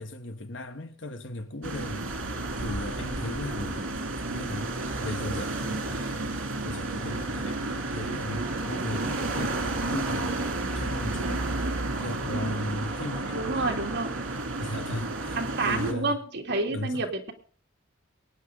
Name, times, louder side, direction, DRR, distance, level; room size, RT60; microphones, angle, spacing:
voice 1, 0.0-2.1 2.6-3.9 4.3-4.7 5.0-14.0 14.6-16.2 16.7-17.1, left 1 dB, 65° left, 1.4 m, -37 dB
sound 1, 1.6-15.9, right 2 dB, 85° right, 2.7 m, -31 dB
voice 2, 13.3-14.1 15.4-17.3, right 2 dB, 60° right, 2.5 m, -29 dB
23.5 x 9.7 x 3.8 m
head